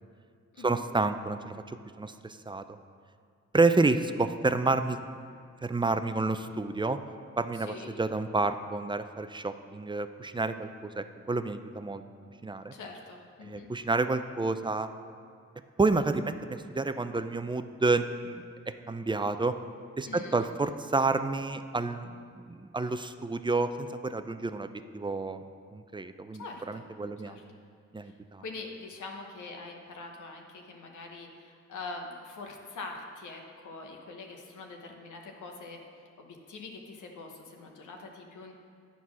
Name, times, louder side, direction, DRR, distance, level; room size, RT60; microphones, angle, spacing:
voice 1, 0.6-2.6 3.5-5.0 5.6-7.0 7.4-12.0 12.4-12.7 13.4-14.9 15.8-18.4 18.9-19.5 20.0-22.1 22.4-25.4 25.7-27.4 27.9-28.4, right 3 dB, 15° right, 10 dB, 0.4 m, -29 dB
voice 2, 7.5-7.9 12.7-13.7 20.0-20.5 26.4-26.8 27.2-27.4 28.0-28.1 28.4-35.8 36.2-38.5, left 3 dB, 85° left, 2 dB, 1.0 m, -44 dB
9.4 x 4.1 x 6.1 m, 2.2 s
cardioid pair, 55°, 30 cm